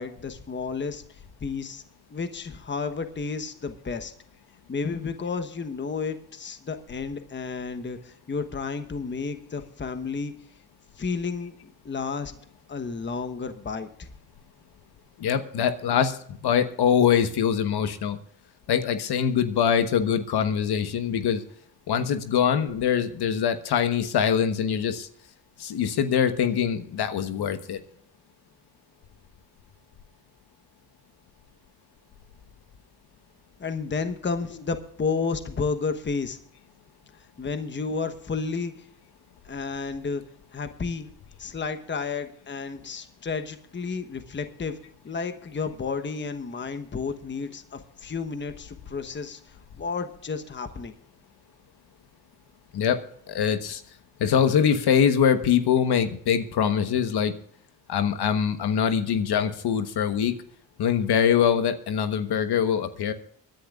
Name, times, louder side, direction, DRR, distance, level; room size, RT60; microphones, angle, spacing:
voice 1, 0.0-1.8 2.1-4.1 4.7-10.3 11.0-12.3 12.7-13.9 33.6-36.4 37.1-38.9 39.4-40.2 40.5-41.1 41.4-44.8 45.0-49.4 49.8-50.9, left 4 dB, 25° left, 8 dB, 1.1 m, -31 dB
voice 2, 15.2-18.2 18.7-21.4 21.9-25.1 25.6-27.8 52.7-53.0 53.3-53.8 54.2-57.3 57.9-60.3 60.8-63.1, left 8 dB, 60° left, 9 dB, 1.3 m, -23 dB
24.5 x 10.5 x 2.5 m, 0.64 s
supercardioid pair, 75°, 43 cm